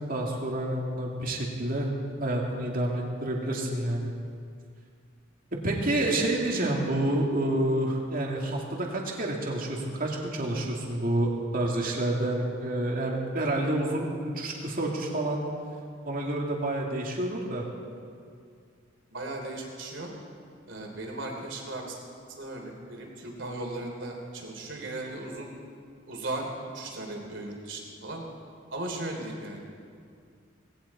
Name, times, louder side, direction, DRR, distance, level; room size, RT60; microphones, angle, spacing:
voice 1, 0.1-1.9 2.2-4.1 5.6-14.1 14.3-15.4 16.1-17.6, right 1 dB, 45° right, -1 dB, 2.4 m, -28 dB
voice 2, 19.1-20.1 20.7-22.0 22.4-25.5 26.1-26.5 26.7-28.2 28.7-29.6, right 2 dB, 70° right, 1 dB, 3.1 m, -37 dB
19.0 x 17.0 x 4.2 m, 2.3 s
head